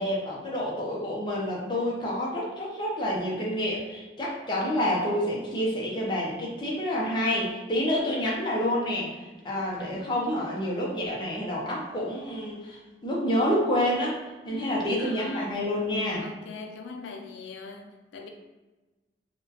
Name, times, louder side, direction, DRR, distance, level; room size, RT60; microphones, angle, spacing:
voice 1, 0.0-9.1 9.4-14.2 14.4-16.2, left 1 dB, 25° left, -5 dB, 0.7 m, -28 dB
voice 2, 9.6-10.1 14.5-15.6 16.2-18.3, left 4 dB, 85° left, 3 dB, 0.3 m, -42 dB
3.6 x 2.2 x 2.8 m, 1.2 s
head